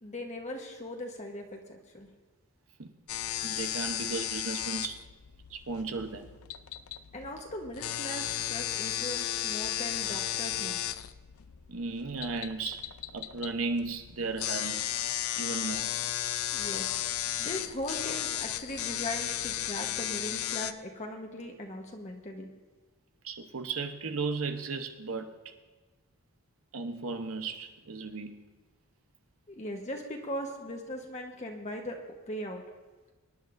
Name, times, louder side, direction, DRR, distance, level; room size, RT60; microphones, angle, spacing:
voice 1, 0.0-2.1 7.1-10.8 16.5-16.9 17.4-22.5 29.5-32.0 32.3-32.6, left 1 dB, 30° left, 2 dB, 1.1 m, -39 dB
sound 1, 3.1-20.7, left 12 dB, 75° left, 0.5 m, -34 dB
voice 2, 3.4-5.0 5.5-6.3 11.7-12.9 13.1-14.9 15.4-15.9 23.2-25.3 26.7-28.4, right 4 dB, 70° right, 6 dB, 0.9 m, -35 dB
24.5 x 10.5 x 2.6 m, 1.2 s
head